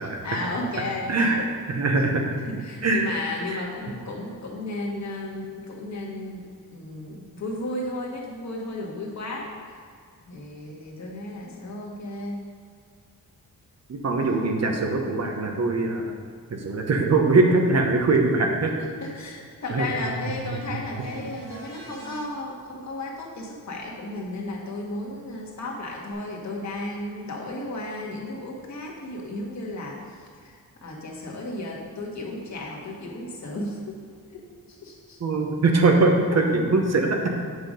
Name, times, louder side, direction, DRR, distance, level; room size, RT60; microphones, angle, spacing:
voice 1, 0.0-1.5 2.4-9.8 10.3-12.4 18.8-34.0 34.3-35.2, left 2 dB, 50° left, -2 dB, 1.6 m, -34 dB
voice 2, 1.1-1.4 1.7-2.4 2.8-3.1 3.5-3.6 13.9-16.0 16.5-18.7 19.7-19.9 35.2-37.3, right 3 dB, 45° right, 2 dB, 0.9 m, -22 dB
sound 1, 21.0-22.2 26.1-26.2, right 3 dB, 90° right, 1.8 m, -43 dB
8.0 x 5.9 x 5.1 m, 2.1 s
wide cardioid pair, 150°, 35 cm